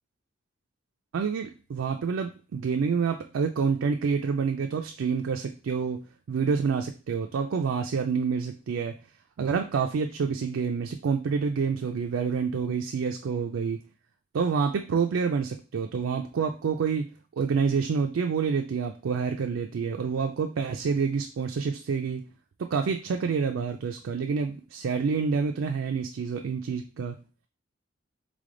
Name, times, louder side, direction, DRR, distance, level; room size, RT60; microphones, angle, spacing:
voice 1, 1.1-6.0 6.3-8.9 9.4-13.8 14.3-22.2 22.6-27.2, right 5 dB, 85° right, 5 dB, 0.4 m, -28 dB
3.7 x 3.3 x 3.8 m, 0.36 s
head